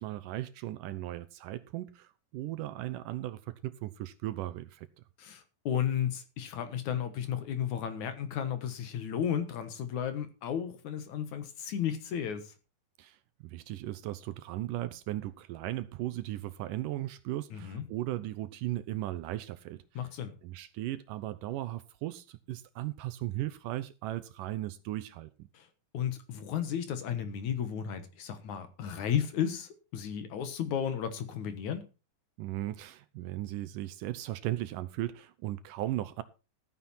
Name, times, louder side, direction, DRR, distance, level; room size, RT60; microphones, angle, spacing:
voice 1, 0.0-4.9 13.0-20.1 20.4-25.5 32.4-36.2, right 15 dB, 75° right, 2.2 m, -37 dB
voice 2, 5.2-12.5 17.5-17.8 20.0-20.3 25.5-25.7 25.9-31.9, left 9 dB, 60° left, 2.5 m, -33 dB
14.0 x 9.4 x 4.3 m
omnidirectional pair, 4.1 m